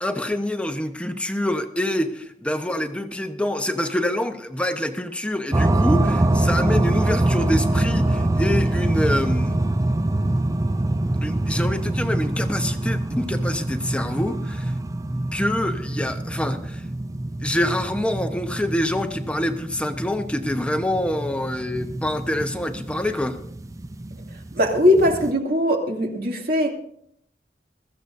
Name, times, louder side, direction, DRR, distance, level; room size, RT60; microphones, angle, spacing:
voice 1, 0.0-9.6 11.2-14.7 15.3-16.8 17.4-23.4, left 1 dB, 5° left, 0.9 m, -26 dB
sound 1, 5.5-25.3, right 1 dB, 20° right, 0.5 m, -24 dB
voice 2, 24.5-26.8, left 1 dB, 60° right, 2.5 m, -20 dB
22.0 x 14.5 x 2.6 m
head